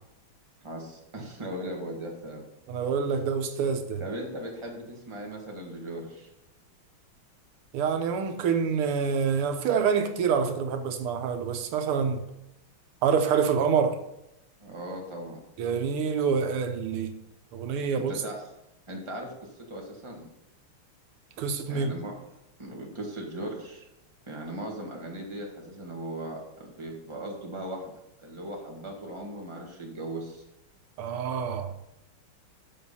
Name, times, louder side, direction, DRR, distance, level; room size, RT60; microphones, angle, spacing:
voice 1, 0.6-2.4 4.0-6.3 14.6-15.4 18.0-18.4 18.9-19.3 19.7-20.3 21.7-22.1 22.6-23.8 24.3-27.9 28.2-30.4, right 1 dB, 15° right, 1.7 m, -38 dB
voice 2, 2.7-4.0 7.7-12.2 13.0-14.0 15.6-17.1 17.5-18.1 21.4-22.0 31.0-31.7, right 6 dB, 90° right, 1.8 m, -26 dB
7.3 x 5.9 x 5.6 m
omnidirectional pair, 2.4 m